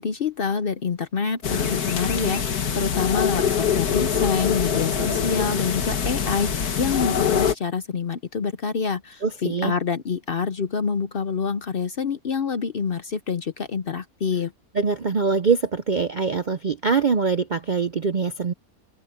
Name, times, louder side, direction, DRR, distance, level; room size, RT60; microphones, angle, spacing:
voice 1, 0.0-14.5, left 5 dB, 50° left, 0.7 m, -27 dB
sound 1, 1.4-7.5, left 7 dB, 90° left, 2.0 m, -24 dB
voice 2, 9.2-9.7 14.7-18.5, right 5 dB, 50° right, 0.5 m, -23 dB
open air
omnidirectional pair, 1.6 m